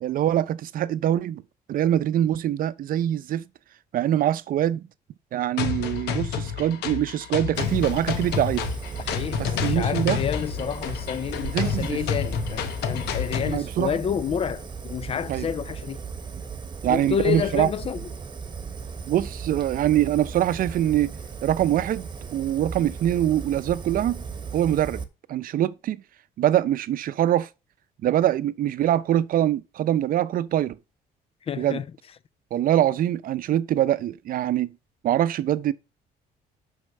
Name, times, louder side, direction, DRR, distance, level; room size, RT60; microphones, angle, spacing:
voice 1, 0.0-1.4 1.7-3.4 3.9-4.9 5.3-8.7 9.4-10.2 11.5-12.0 13.4-14.0 15.3-15.5 16.8-17.7 19.1-21.1 21.4-24.2 24.5-25.0 25.3-26.0 26.4-27.5 28.0-30.8 31.6-31.8 32.5-34.7 35.0-35.7, right 12 dB, 55° right, 0.6 m, -24 dB
sound 1, 5.6-13.6, left 7 dB, 80° left, 1.1 m, -29 dB
Fire, 7.5-25.0, right 5 dB, 25° right, 1.2 m, -36 dB
voice 2, 9.0-16.0 16.9-18.1 31.5-31.9, left 8 dB, 35° left, 0.4 m, -29 dB
6.2 x 5.7 x 6.5 m
cardioid pair, 110°, 17 cm